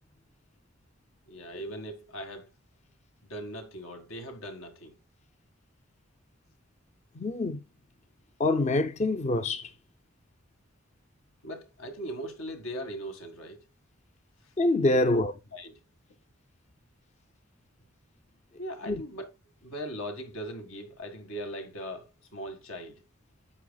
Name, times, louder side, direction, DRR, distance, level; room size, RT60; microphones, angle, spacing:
voice 1, 1.3-2.5 3.3-4.9 11.4-13.6 15.0-15.2 15.5-15.8 18.6-19.3 19.6-23.0, equal, 80° left, 1.8 m, -39 dB
voice 2, 7.1-7.6 8.4-9.7 14.6-15.3 18.9-19.0, left 2 dB, 30° left, 0.5 m, -25 dB
11.0 x 7.7 x 2.3 m
head